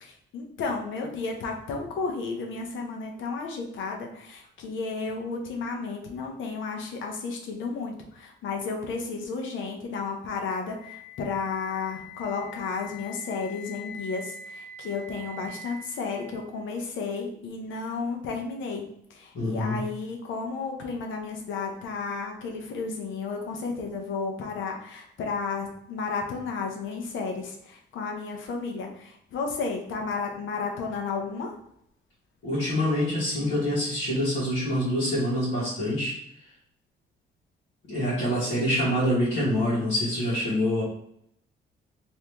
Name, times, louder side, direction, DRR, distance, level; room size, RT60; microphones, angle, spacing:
voice 1, 0.0-31.5, left 4 dB, 75° left, 2 dB, 0.7 m, -33 dB
Wind instrument woodwind instrument, 10.7-16.7, left 2 dB, 30° left, 1.4 m, -44 dB
voice 2, 19.3-19.8 32.4-36.2 37.9-40.8, left 1 dB, 60° left, -9 dB, 1.3 m, -26 dB
2.8 x 2.7 x 3.4 m, 0.71 s
cardioid pair, 90°, 20 cm